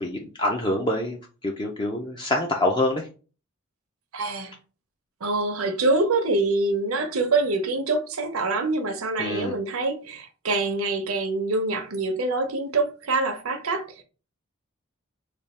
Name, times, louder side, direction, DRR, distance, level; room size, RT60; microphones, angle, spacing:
voice 1, 0.0-3.1 9.2-9.6, left 1 dB, 20° left, 0.4 m, -26 dB
voice 2, 4.1-4.5 5.2-14.0, right 3 dB, 75° right, 0.7 m, -25 dB
3.4 x 2.3 x 4.1 m
head